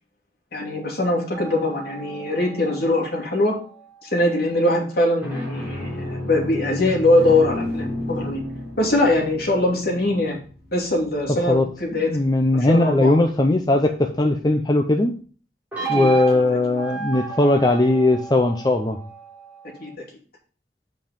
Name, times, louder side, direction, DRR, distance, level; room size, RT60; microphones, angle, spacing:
voice 1, 0.5-3.5 4.0-8.4 8.8-10.4 10.7-12.2 12.5-13.2 15.8-16.4 19.8-19.9, left 1 dB, 60° left, -2 dB, 3.0 m, -22 dB
sound 1, 1.3-4.0 5.0-11.9 15.7-19.9, right 2 dB, 10° right, 3.7 m, -32 dB
voice 2, 12.1-15.1 15.9-19.0, left 2 dB, 25° left, 4 dB, 0.7 m, -19 dB
8.1 x 5.4 x 5.2 m, 0.40 s
head